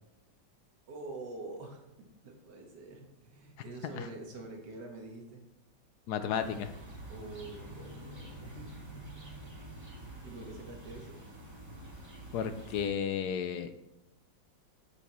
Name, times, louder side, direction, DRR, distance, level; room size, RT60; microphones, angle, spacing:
voice 1, 0.9-5.4 7.1-9.4 10.0-11.2, right 2 dB, 65° right, 2 dB, 1.9 m, -46 dB
voice 2, 6.1-6.7 12.3-13.7, left 8 dB, 70° left, 10 dB, 1.0 m, -33 dB
sound 1, 6.3-12.9, right 1 dB, 15° right, 1.9 m, -47 dB
8.6 x 7.1 x 3.0 m, 0.93 s
omnidirectional pair, 2.0 m